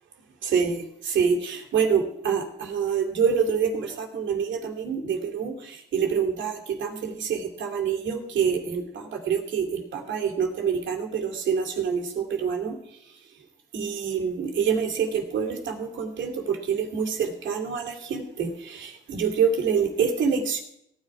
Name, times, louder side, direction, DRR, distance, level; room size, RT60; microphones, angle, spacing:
voice 1, 0.4-13.2 13.7-20.6, right 6 dB, 70° right, 3 dB, 2.7 m, -26 dB
17.0 x 9.9 x 4.9 m, 0.75 s
cardioid pair, 90°, 20 cm